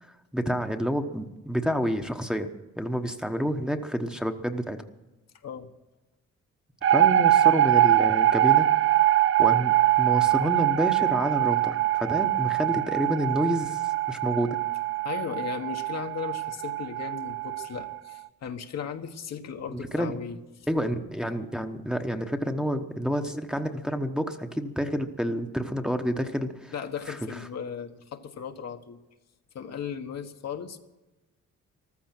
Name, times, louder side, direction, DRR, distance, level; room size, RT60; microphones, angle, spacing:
voice 1, 0.0-2.5 2.8-4.8 6.8-8.7 9.4-14.6 19.7-20.2 20.7-26.7 27.1-27.4, equal, ahead, 5 dB, 1.1 m, -29 dB
sound 1, 6.8-18.0, right 13 dB, 45° right, 0.4 m, -23 dB
voice 2, 15.0-20.4 26.7-29.0 29.5-30.8, left 7 dB, 60° left, 5 dB, 1.4 m, -36 dB
14.5 x 13.0 x 6.1 m, 1.0 s
cardioid pair, 90°, 30 cm